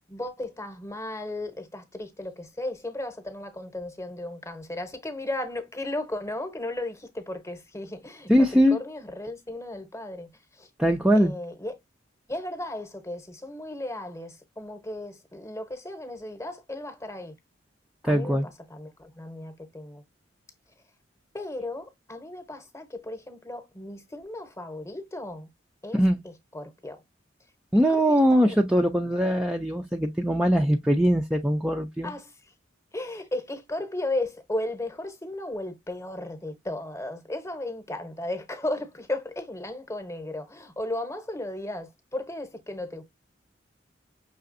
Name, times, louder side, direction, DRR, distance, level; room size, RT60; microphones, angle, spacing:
voice 1, 0.1-10.7 11.1-11.8 12.3-17.3 18.0-20.0 21.3-25.5 25.8-27.0 27.9-28.8 32.0-32.5 32.9-43.0, left 1 dB, 15° left, 0.9 m, -35 dB
voice 2, 8.3-8.8 10.8-11.3 18.0-18.5 25.9-26.2 27.7-32.1, equal, 5° right, 0.4 m, -21 dB
5.8 x 3.3 x 2.5 m
head